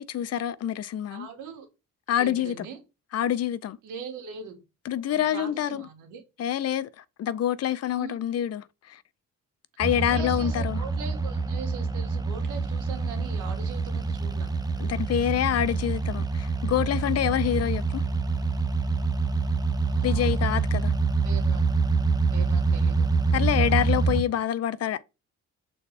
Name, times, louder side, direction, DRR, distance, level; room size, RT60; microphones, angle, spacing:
voice 1, 0.0-1.3 2.1-2.7 3.1-3.8 4.8-5.8 6.4-9.0 9.8-10.8 14.8-18.0 20.0-20.9 23.3-25.0, left 10 dB, 55° left, 0.6 m, -27 dB
voice 2, 1.1-1.7 2.2-2.8 3.8-4.6 5.1-6.2 7.9-8.2 10.1-14.5 19.9-20.5 21.2-21.7 22.3-23.1, right 6 dB, 85° right, 2.1 m, -41 dB
sound 1, 9.8-24.2, right 4 dB, 15° right, 0.8 m, -26 dB
6.9 x 4.3 x 3.3 m
cardioid pair, 90°, 30 cm